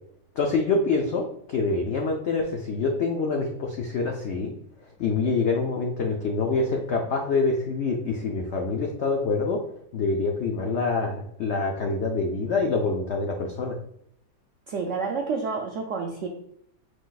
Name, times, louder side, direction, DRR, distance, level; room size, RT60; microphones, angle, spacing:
voice 1, 0.4-4.5 5.0-9.6 9.9-13.8, left 3 dB, 80° left, 1 dB, 0.6 m, -26 dB
voice 2, 14.7-16.3, right 5 dB, 75° right, 1 dB, 0.6 m, -29 dB
4.9 x 2.4 x 3.9 m, 0.72 s
omnidirectional pair, 1.8 m